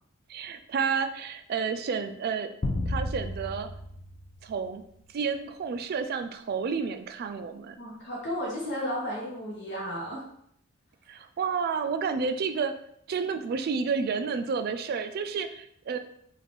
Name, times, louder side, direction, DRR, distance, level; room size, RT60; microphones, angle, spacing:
voice 1, 0.3-2.5 2.9-3.7 4.4-4.8 5.1-7.8 11.1-12.7 13.1-16.0, right 5 dB, 50° right, 9 dB, 0.3 m, -30 dB
sound 1, 2.6-5.2, left 1 dB, 30° left, 0.4 m, -33 dB
voice 2, 7.8-10.2, equal, 60° left, -4 dB, 0.8 m, -33 dB
3.6 x 2.4 x 3.5 m, 0.69 s
head